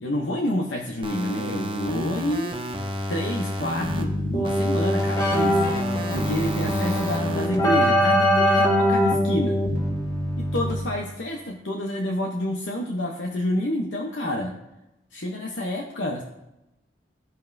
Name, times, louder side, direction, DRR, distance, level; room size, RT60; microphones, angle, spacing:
voice 1, 0.0-2.6 3.1-5.6 6.1-9.6 10.4-14.5 15.1-16.2, left 1 dB, 80° left, 0 dB, 0.8 m, -28 dB
sound 1, 1.0-4.0 4.4-7.5, equal, 25° right, 0.8 m, -31 dB
Keyboard (musical), 3.8-11.1, equal, 20° left, 1.7 m, -23 dB
16.0 x 5.4 x 2.6 m, 0.92 s
head